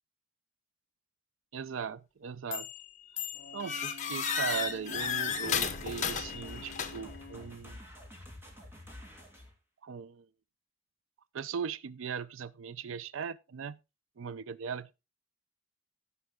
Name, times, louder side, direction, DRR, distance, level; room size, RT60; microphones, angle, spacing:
voice 1, 1.5-2.7 3.1-3.3 3.5-7.8 9.8-10.3 11.3-13.8 14.2-14.9, right 6 dB, 90° right, 0.5 m, -39 dB
sound 1, 2.5-2.8 3.2-7.2, left 6 dB, 40° left, 1.3 m, -34 dB
Brass instrument, 3.3-7.6, left 4 dB, 55° left, 1.8 m, -50 dB
sound 2, 5.8-9.5, left 1 dB, 10° right, 2.6 m, -49 dB
16.0 x 5.6 x 3.7 m
head